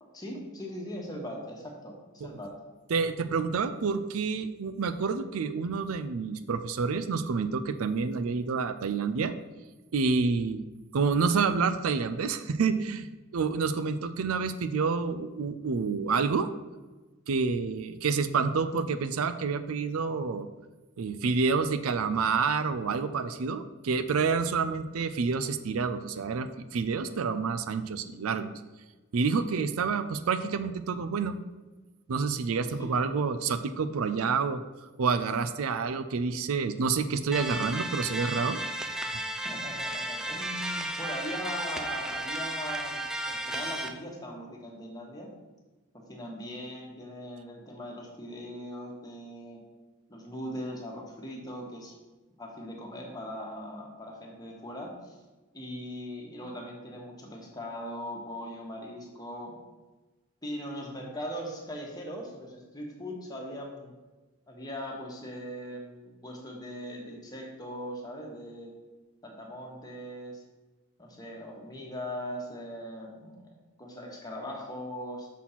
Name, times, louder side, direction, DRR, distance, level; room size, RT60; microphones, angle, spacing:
voice 1, 0.0-2.6 32.8-32.9 39.4-45.3 45.9-49.6 50.1-51.9 52.4-55.2 55.5-59.6 60.4-63.9 64.5-68.7 69.2-70.4 71.0-73.5 73.8-75.3, equal, 20° left, -1 dB, 1.3 m, -40 dB
voice 2, 2.9-9.3 9.9-10.6 10.9-13.1 13.3-16.5 17.3-20.5 21.0-28.5 29.1-31.4 32.1-34.6 35.0-38.6, right 5 dB, 85° right, 11 dB, 0.5 m, -28 dB
sound 1, 37.3-43.9, right 1 dB, 5° right, 0.3 m, -34 dB
6.2 x 4.2 x 5.7 m, 1.2 s
head